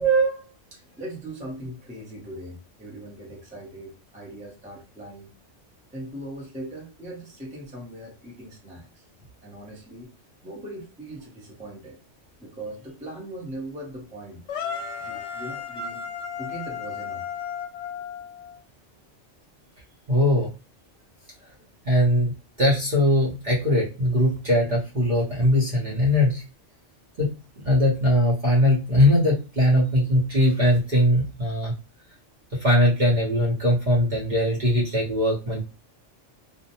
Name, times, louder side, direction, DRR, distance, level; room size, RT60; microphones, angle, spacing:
voice 1, 0.0-5.3 5.9-9.0 9.4-10.1 10.4-12.0 12.4-14.4 15.0-16.1 16.4-17.2 21.3-21.7, right 4 dB, 10° right, -3 dB, 0.7 m, -34 dB
sound 1, 14.5-18.6, left 6 dB, 70° left, 0.8 m, -34 dB
voice 2, 20.1-20.5 21.9-22.3 22.6-26.4 27.2-27.3 27.6-31.7 32.5-35.6, left 1 dB, 45° right, -4 dB, 0.9 m, -21 dB
2.5 x 2.1 x 2.8 m, 0.29 s
omnidirectional pair, 1.2 m